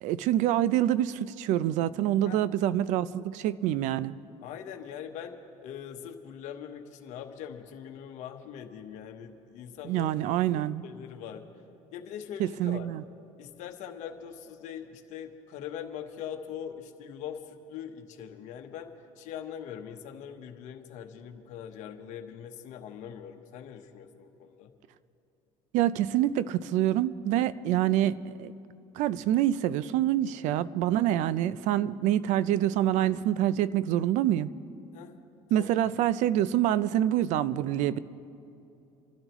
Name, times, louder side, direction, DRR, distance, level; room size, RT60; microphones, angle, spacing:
voice 1, 0.0-4.2 9.8-10.8 12.4-13.0 25.7-28.5 28.9-34.5 35.5-38.0, right 12 dB, 70° right, 17 dB, 0.5 m, -26 dB
voice 2, 4.4-10.1 10.4-11.4 11.9-12.9 13.4-24.7 34.9-35.2 35.5-35.8, left 8 dB, 65° left, 5 dB, 1.1 m, -42 dB
28.5 x 12.0 x 3.1 m, 2.7 s
cardioid pair, 110°, 13 cm